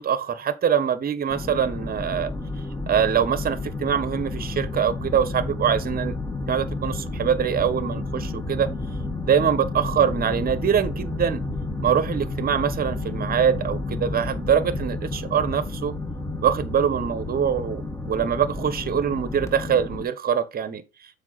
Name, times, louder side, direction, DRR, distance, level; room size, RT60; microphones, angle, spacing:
voice 1, 0.0-2.3 2.9-6.2 6.5-8.7 9.3-11.4 11.8-15.9 16.4-20.8, right 8 dB, 30° right, 1.2 m, -23 dB
sound 1, 1.3-20.0, left 2 dB, 10° left, 1.7 m, -31 dB
7.3 x 5.2 x 4.0 m
hypercardioid pair, 75°, 30 cm